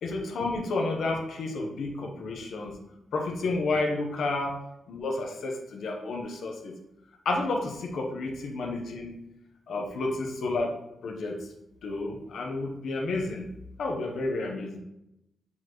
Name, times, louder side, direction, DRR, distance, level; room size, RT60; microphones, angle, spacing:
voice 1, 0.0-2.8 3.1-4.6 4.9-6.7 7.2-9.2 9.7-10.7 11.0-11.5 11.8-13.5 13.8-14.8, left 2 dB, 65° left, 2 dB, 1.0 m, -31 dB
7.2 x 4.3 x 3.1 m, 0.88 s
wide cardioid pair, 180°, 0 cm